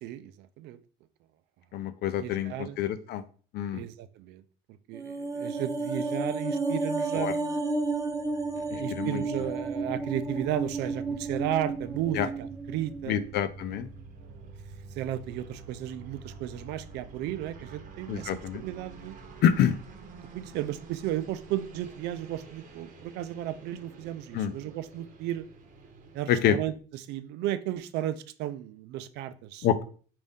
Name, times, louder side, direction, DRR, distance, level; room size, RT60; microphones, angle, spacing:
voice 1, 0.0-0.8 2.2-2.8 3.7-4.4 4.7-7.6 8.5-13.2 14.2-14.5 14.9-19.1 20.3-25.5 26.1-29.7, right 12 dB, 85° right, 13 dB, 0.4 m, -34 dB
voice 2, 1.7-3.2 3.5-3.8 7.2-7.3 8.7-9.2 12.1-12.3 13.1-13.9 18.1-18.6 19.4-19.8 24.3-24.5 26.3-26.6 29.6-29.8, left 9 dB, 75° left, 11 dB, 0.5 m, -27 dB
sound 1, 4.9-13.4 13.7-13.8, right 3 dB, 20° right, 0.7 m, -32 dB
sound 2, 7.4-26.2, right 3 dB, 50° right, 0.9 m, -48 dB
5.2 x 2.6 x 3.5 m, 0.42 s
cardioid pair, 110°, 17 cm